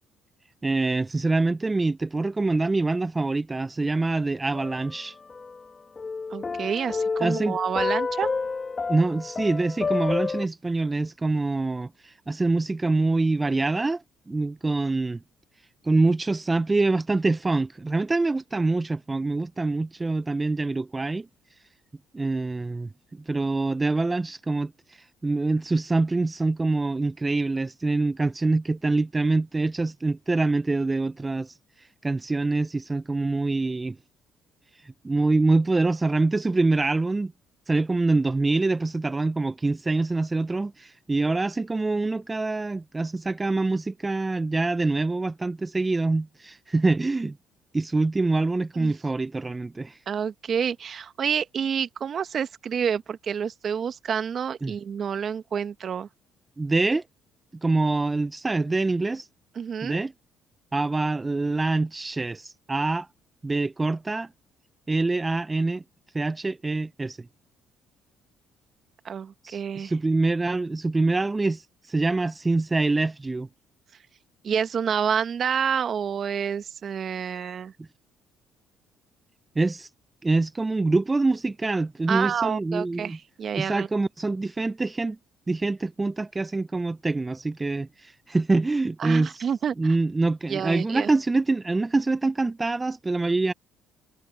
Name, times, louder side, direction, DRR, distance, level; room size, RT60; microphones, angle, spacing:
voice 1, 0.6-5.2 7.2-7.6 8.9-15.2 15.8-21.6 22.1-34.0 34.7-37.3 37.7-47.4 47.7-50.0 54.6-54.7 56.6-57.0 57.6-59.3 59.8-60.1 60.7-63.1 63.4-64.3 64.9-65.8 66.1-67.3 69.4-73.5 77.8-77.9 79.6-79.9 80.2-83.2 83.5-85.2 85.5-89.4 89.8-93.5, right 3 dB, 20° right, 0.5 m, -25 dB
sound 1, 4.5-5.6 6.0-10.4, left 4 dB, 30° left, 1.5 m, -29 dB
voice 2, 6.3-8.3 48.7-48.9 50.1-56.1 59.6-60.0 69.0-69.9 74.4-77.7 82.1-83.9 89.0-89.7 90.5-91.1, right 7 dB, 50° right, 1.5 m, -28 dB
supercardioid pair, 75°, 0 cm